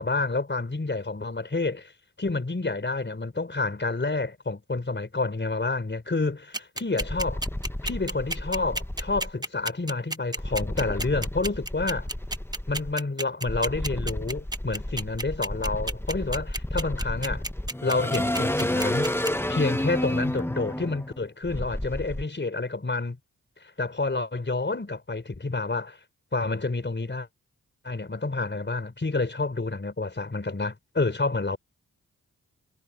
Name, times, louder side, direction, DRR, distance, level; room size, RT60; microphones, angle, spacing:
voice 1, 0.0-1.9 2.2-7.4 7.8-12.1 12.7-17.4 17.8-19.2 19.5-23.2 23.8-26.0 26.3-27.3 27.8-31.6, left 3 dB, 30° left, 4.4 m, -29 dB
sound 1, 6.5-19.3, right 1 dB, 10° right, 1.4 m, -31 dB
sound 2, 7.0-9.3 10.4-12.9 13.5-22.2, left 1 dB, 5° left, 1.4 m, -31 dB
cardioid pair, 45°, 34 cm